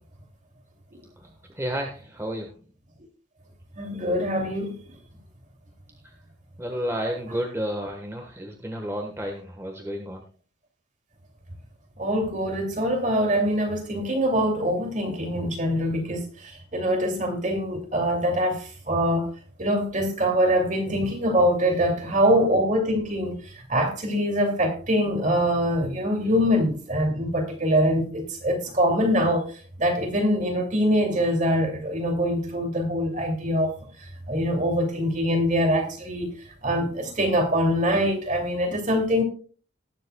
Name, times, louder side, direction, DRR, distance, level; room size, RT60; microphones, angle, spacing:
voice 1, 1.5-2.5 6.0-6.1 6.6-10.2 21.7-21.9, equal, 15° right, 1.2 m, -31 dB
voice 2, 3.8-4.7 12.0-16.3 16.7-19.3 19.6-23.4 23.7-29.5 29.8-33.7 34.3-36.3 36.6-39.2, equal, 40° right, 2.6 m, -23 dB
19.5 x 7.4 x 2.2 m
head